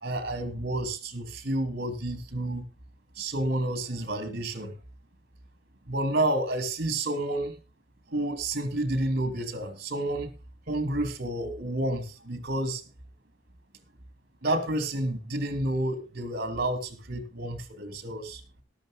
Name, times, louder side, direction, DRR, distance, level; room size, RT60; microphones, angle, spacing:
voice 1, 0.0-2.6 3.2-4.7 5.9-7.5 8.1-10.3 10.7-12.8 14.4-18.4, right 1 dB, 55° right, 8 dB, 3.0 m, -30 dB
13.5 x 12.5 x 3.9 m, 0.29 s
head